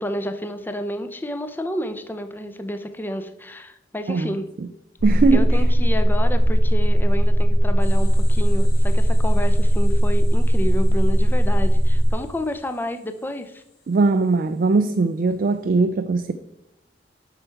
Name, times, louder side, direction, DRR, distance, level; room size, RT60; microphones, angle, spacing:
voice 1, 0.0-4.5 5.3-13.6, equal, 10° left, 0.5 m, -30 dB
sound 1, 5.0-12.1, equal, 80° left, 2.2 m, -17 dB
voice 2, 5.0-5.6 13.9-16.3, right 3 dB, 50° right, 0.4 m, -20 dB
sound 2, 7.8-15.5, left 3 dB, 60° left, 2.9 m, -51 dB
7.7 x 5.7 x 4.5 m
head